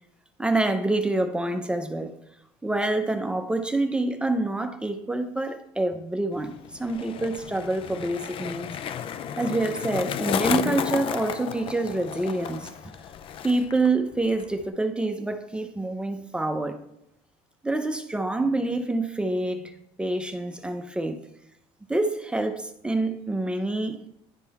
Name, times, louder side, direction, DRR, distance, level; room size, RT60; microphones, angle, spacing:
voice 1, 0.4-2.1 2.6-8.7 9.4-12.7 13.4-16.8 17.6-19.7 20.0-21.2 21.9-24.0, right 2 dB, 10° right, 7 dB, 0.7 m, -27 dB
Skateboard, 6.3-13.9 14.1-14.7, left 9 dB, 50° left, 0.4 m, -32 dB
11.0 x 3.8 x 4.2 m, 0.78 s
cardioid pair, 110°, 12 cm